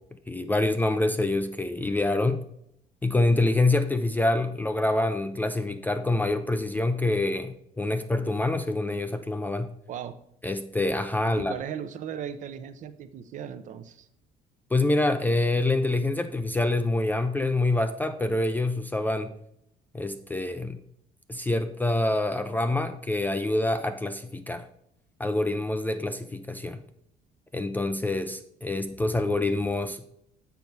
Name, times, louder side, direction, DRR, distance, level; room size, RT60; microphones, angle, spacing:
voice 1, 0.3-2.4 3.0-9.7 10.4-11.5 14.7-19.3 19.9-20.8 21.3-24.6 25.2-26.8 27.5-30.1, left 2 dB, 10° left, 8 dB, 0.3 m, -26 dB
voice 2, 11.3-14.1, right 8 dB, 45° right, 11 dB, 0.6 m, -37 dB
7.0 x 5.4 x 4.5 m, 0.74 s
cardioid pair, 155°, 17 cm